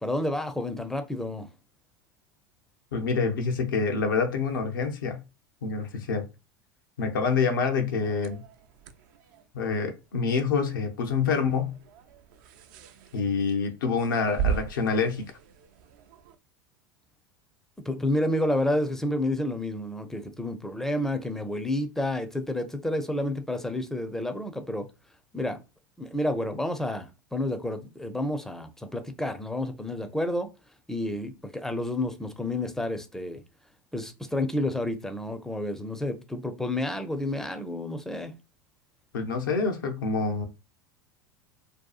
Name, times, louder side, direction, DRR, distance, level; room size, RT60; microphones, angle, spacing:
voice 1, 0.0-1.5 17.9-24.9 25.3-25.6 26.0-30.5 30.9-33.4 33.9-38.3, left 1 dB, 5° left, 0.4 m, -30 dB
voice 2, 2.9-5.2 5.6-6.3 7.0-8.4 9.5-11.7 13.1-15.2 39.1-40.5, left 5 dB, 80° left, 0.5 m, -26 dB
sound 1, 8.0-16.4, right 8 dB, 65° right, 0.4 m, -38 dB
2.6 x 2.3 x 2.3 m
hypercardioid pair, 85°, 11 cm